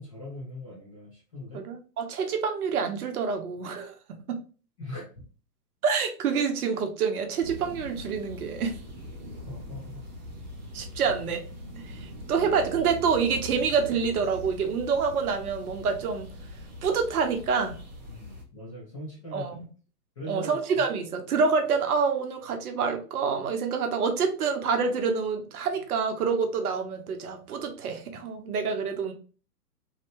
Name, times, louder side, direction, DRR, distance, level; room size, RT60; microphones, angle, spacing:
voice 1, 0.0-1.6 4.8-5.2 9.3-10.0 18.0-19.5 20.2-20.9, left 1 dB, 20° left, -4 dB, 0.5 m, -41 dB
voice 2, 1.5-4.4 5.8-8.8 10.7-11.4 11.8-16.3 16.8-17.8 19.3-19.7 20.3-29.1, right 5 dB, 65° right, 5 dB, 0.7 m, -27 dB
sound 1, 7.4-18.4, left 1 dB, 30° right, 0.5 m, -42 dB
2.7 x 2.1 x 2.9 m, 0.37 s
hypercardioid pair, 145°, 49 cm